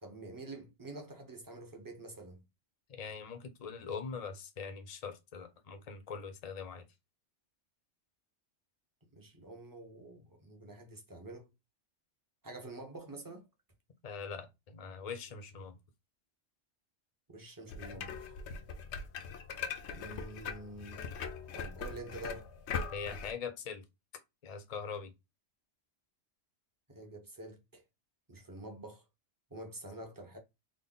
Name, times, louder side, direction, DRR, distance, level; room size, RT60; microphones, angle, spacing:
voice 1, 0.0-2.4 9.1-11.5 12.4-13.5 17.3-18.3 19.9-21.1 21.5-22.5 26.9-27.8 28.3-29.0 29.5-30.4, right 2 dB, 20° right, 0.7 m, -47 dB
voice 2, 2.9-6.8 14.0-15.8 22.9-23.8 24.4-25.1, left 5 dB, 40° left, 0.6 m, -42 dB
sound 1, 17.7-23.3, left 5 dB, 75° left, 0.9 m, -41 dB
3.7 x 2.1 x 3.8 m
omnidirectional pair, 1.2 m